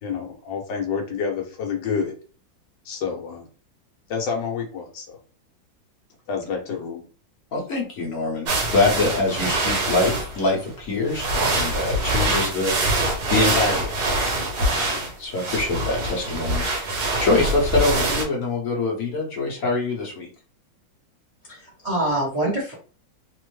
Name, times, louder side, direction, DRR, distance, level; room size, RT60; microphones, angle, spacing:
voice 1, 0.0-2.1 2.8-3.5 4.1-5.2 6.3-7.0, left 6 dB, 75° left, 1 dB, 1.3 m, -28 dB
voice 2, 7.5-13.9 14.6-20.3, left 3 dB, 55° left, -2 dB, 1.1 m, -25 dB
sound 1, 8.5-10.5 11.0-18.2, right 2 dB, 60° right, 1.3 m, -24 dB
voice 3, 21.4-22.7, right 1 dB, 45° right, -4 dB, 0.5 m, -25 dB
3.3 x 2.0 x 3.1 m, 0.40 s
omnidirectional pair, 2.1 m